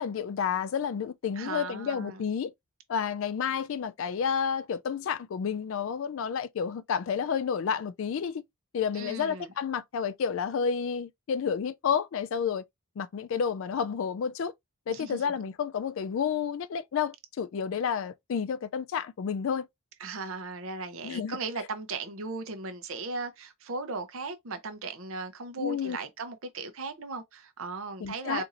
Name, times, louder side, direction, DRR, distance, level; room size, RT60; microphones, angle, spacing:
voice 1, 0.0-2.5 2.9-8.4 8.7-12.6 13.0-14.5 14.9-19.7 21.0-21.4 25.6-26.0 28.0-28.4, left 7 dB, 65° left, 0.3 m, -30 dB
voice 2, 1.4-2.2 8.9-9.5 14.9-15.2 20.0-28.4, right 3 dB, 65° right, 0.7 m, -37 dB
4.1 x 2.6 x 2.5 m
head